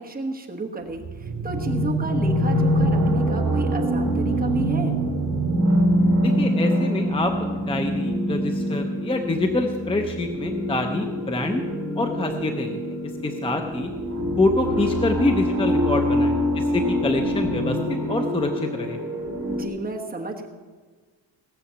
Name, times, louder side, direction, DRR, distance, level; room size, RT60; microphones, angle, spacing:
voice 1, 0.0-5.0 15.6-16.1 19.5-20.5, right 2 dB, 20° right, 1 dB, 1.3 m, -32 dB
sound 1, 0.9-19.6, equal, 35° right, 2.8 m, -24 dB
voice 2, 6.2-11.6 12.0-12.8 13.2-13.9 14.4-19.0, left 2 dB, 10° left, 5 dB, 0.6 m, -26 dB
18.0 x 7.1 x 7.0 m, 1.4 s
cardioid pair, 165°, 46 cm